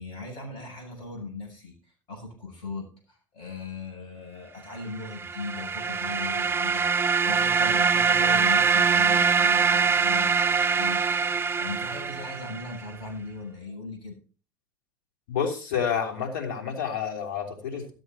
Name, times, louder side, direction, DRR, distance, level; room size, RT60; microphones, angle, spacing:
voice 1, 0.0-14.2, left 3 dB, 50° left, 2 dB, 7.9 m, -39 dB
sound 1, 5.0-12.8, right 6 dB, 20° right, 0.5 m, -23 dB
voice 2, 15.3-17.9, left 7 dB, 70° left, 4 dB, 3.2 m, -29 dB
13.5 x 8.0 x 4.2 m, 0.35 s
hypercardioid pair, 75°, 11 cm